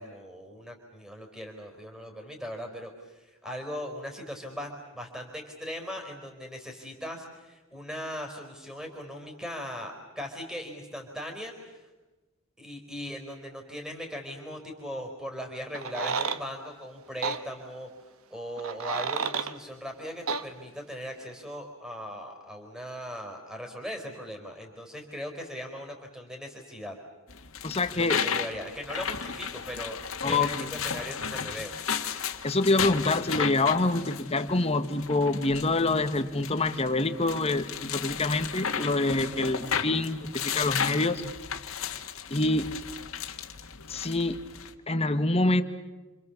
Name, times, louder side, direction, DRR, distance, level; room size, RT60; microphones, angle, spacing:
voice 1, 0.0-2.9 3.2-11.8 12.6-17.9 18.3-26.9 27.9-31.7, equal, 5° right, 3 dB, 4.4 m, -39 dB
sound 1, 15.7-16.4 17.2-17.4 18.6-19.5 20.3-20.4, right 5 dB, 85° right, 1.2 m, -30 dB
sound 2, 27.3-44.7, left 7 dB, 70° left, 1.8 m, -34 dB
voice 2, 27.6-28.2 30.2-30.7 32.4-41.2 42.3-42.7 43.9-44.4 44.9-45.6, left 2 dB, 30° left, 9 dB, 1.4 m, -26 dB
29.5 x 26.5 x 7.2 m, 1.2 s
head